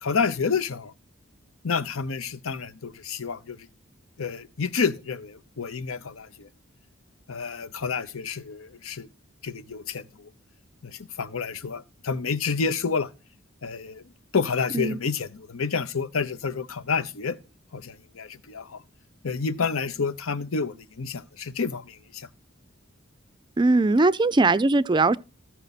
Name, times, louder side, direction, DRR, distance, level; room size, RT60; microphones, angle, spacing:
voice 1, 0.0-0.9 1.6-3.6 4.2-6.5 7.3-9.1 9.4-10.3 10.8-13.1 13.6-14.0 14.3-17.4 17.7-18.8 19.2-22.3, left 5 dB, 75° left, 0.8 m, -29 dB
voice 2, 23.6-25.2, right 3 dB, 20° right, 0.4 m, -20 dB
14.5 x 5.8 x 4.1 m
head